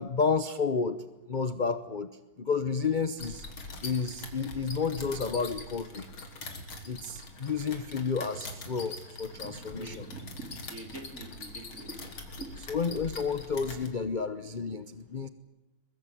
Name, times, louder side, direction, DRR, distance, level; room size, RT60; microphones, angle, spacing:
voice 1, 0.0-2.1 2.4-3.4 3.8-6.1 6.8-10.1 12.7-15.3, left 5 dB, 45° left, 12 dB, 0.6 m, -31 dB
sound 1, 3.2-13.9, left 2 dB, 85° left, 3.8 m, -43 dB
voice 2, 9.3-12.1 12.4-12.6, right 2 dB, 40° right, 3 dB, 4.3 m, -44 dB
23.0 x 22.0 x 9.2 m, 1.0 s
omnidirectional pair, 2.2 m